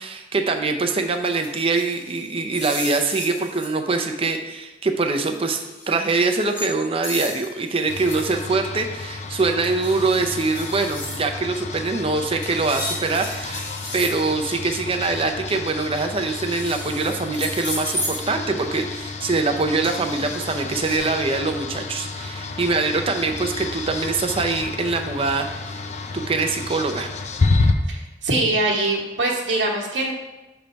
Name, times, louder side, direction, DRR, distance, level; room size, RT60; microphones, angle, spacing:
voice 1, 0.0-5.6 5.9-25.8 26.1-27.1, right 3 dB, 30° right, 5 dB, 0.5 m, -24 dB
sound 1, 1.3-3.7 5.3-6.7 7.0-8.3 9.6-11.2 12.4-14.1 16.2-18.2 19.8-21.0, left 1 dB, 20° left, 1.8 m, -34 dB
sound 2, 7.9-27.7, left 3 dB, 40° left, 0.5 m, -30 dB
voice 2, 27.9-30.1, right 2 dB, 70° right, -3 dB, 1.2 m, -23 dB
6.9 x 3.4 x 5.1 m, 1.1 s
head